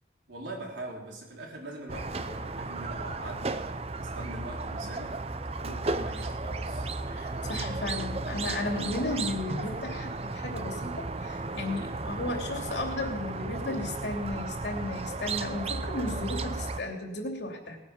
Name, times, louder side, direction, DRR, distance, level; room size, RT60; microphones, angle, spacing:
voice 1, 0.3-5.2 5.6-6.9, right 1 dB, 90° right, -2 dB, 4.2 m, -42 dB
Squeak, 1.9-16.8, right 3 dB, 35° right, 0.6 m, -34 dB
voice 2, 7.1-17.8, left 2 dB, 70° left, 2 dB, 2.9 m, -34 dB
19.5 x 9.2 x 5.9 m, 1.0 s
head